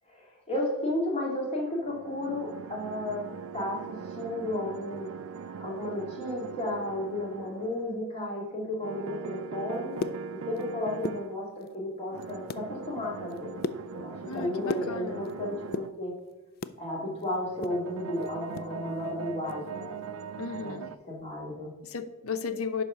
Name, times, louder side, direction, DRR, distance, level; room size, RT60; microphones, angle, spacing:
voice 1, 0.1-3.2 3.5-5.1 5.5-10.0 10.5-13.6 13.9-16.2 16.8-19.9 20.6-20.8 21.0-21.7, left 1 dB, 30° left, -3 dB, 2.2 m, -33 dB
sound 1, 1.8-8.0 8.8-11.3 12.1-15.9 17.2-21.0, right 6 dB, 80° right, 0.4 m, -41 dB
sound 2, 9.7-10.7 10.9-11.8 12.2-12.7 13.1-15.3 15.6-16.8 17.2-18.7 19.0-19.1 19.5-19.7 20.1-20.3, left 4 dB, 45° left, 0.3 m, -37 dB
voice 2, 14.3-15.2 20.4-20.9 21.8-22.8, left 5 dB, 85° left, 11 dB, 0.7 m, -34 dB
10.5 x 4.1 x 5.7 m, 1.1 s
head